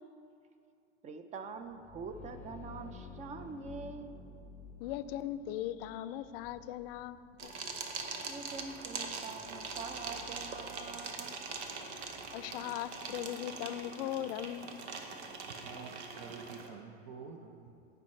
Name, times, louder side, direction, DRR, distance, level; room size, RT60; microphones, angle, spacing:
voice 1, 1.0-4.1 8.3-11.4 12.0-12.1 12.4-12.5, right 4 dB, 20° right, 9 dB, 0.5 m, -45 dB
sound 1, 1.6-13.2, left 4 dB, 5° left, 0.8 m, -53 dB
voice 2, 4.8-7.5 12.3-14.8, left 12 dB, 60° left, 13 dB, 0.5 m, -39 dB
sound 2, 7.4-16.7, right 4 dB, 85° right, 1.0 m, -42 dB
voice 3, 15.4-17.9, right 5 dB, 50° right, 1 dB, 0.8 m, -48 dB
15.0 x 5.4 x 3.2 m, 2.5 s
supercardioid pair, 120°, 33 cm